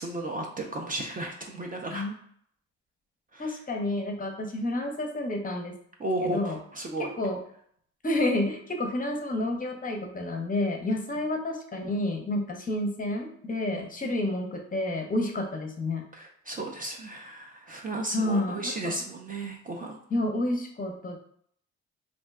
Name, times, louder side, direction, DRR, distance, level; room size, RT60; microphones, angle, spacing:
voice 1, 0.0-2.1 3.3-3.5 6.0-7.1 13.7-13.9 16.1-20.0, right 2 dB, 30° right, 2 dB, 0.4 m, -34 dB
voice 2, 3.4-5.7 6.2-6.6 7.0-7.4 8.0-16.0 18.1-19.0 20.1-21.2, left 1 dB, 30° left, 2 dB, 0.6 m, -30 dB
2.6 x 2.2 x 3.4 m, 0.64 s
cardioid pair, 90°, 30 cm